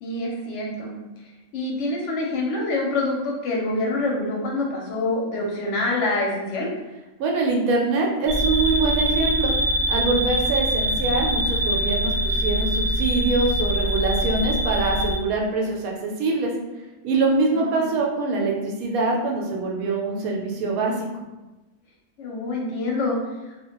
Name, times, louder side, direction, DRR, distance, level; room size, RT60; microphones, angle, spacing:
voice 1, 0.0-1.0 1.5-6.7 17.5-17.9 22.2-23.2, left 2 dB, 65° left, -2 dB, 0.8 m, -26 dB
voice 2, 7.2-9.5 9.9-16.5 17.0-21.1, right 3 dB, 85° right, 0 dB, 1.0 m, -24 dB
sound 1, 8.3-15.2, equal, 55° right, 0.7 m, -23 dB
2.3 x 2.1 x 2.9 m, 1.1 s
omnidirectional pair, 1.5 m